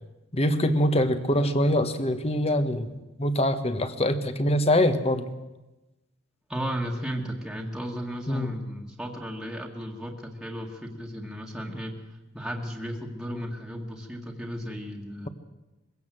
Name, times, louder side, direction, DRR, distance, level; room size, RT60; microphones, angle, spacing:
voice 1, 0.3-5.3 8.3-8.6, left 1 dB, 30° left, 9 dB, 1.4 m, -24 dB
voice 2, 6.5-11.9 12.3-15.3, equal, 5° right, -1 dB, 1.9 m, -34 dB
22.0 x 16.5 x 7.7 m, 1.1 s
head